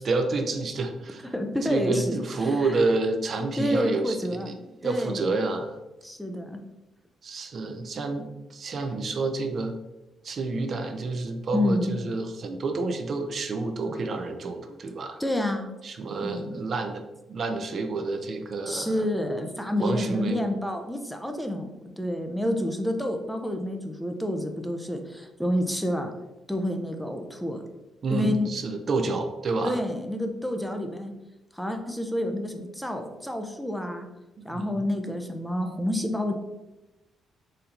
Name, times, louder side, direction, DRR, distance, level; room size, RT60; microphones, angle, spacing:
voice 1, 0.0-1.3 1.6-4.5 4.8-5.8 7.2-9.8 10.2-15.2 15.8-17.0 17.3-19.1 19.8-20.4 28.0-29.8 34.4-34.9, right 3 dB, 50° right, 6 dB, 0.5 m, -29 dB
voice 2, 1.3-2.8 3.6-4.5 4.8-5.3 6.0-6.6 11.5-11.9 15.2-15.7 16.2-16.6 18.7-21.7 22.0-26.1 26.5-27.6 28.1-28.5 29.6-31.1 31.5-34.1 34.4-36.3, left 1 dB, 5° left, 5 dB, 0.5 m, -29 dB
4.3 x 2.7 x 3.8 m, 0.99 s
cardioid pair, 90°, 0 cm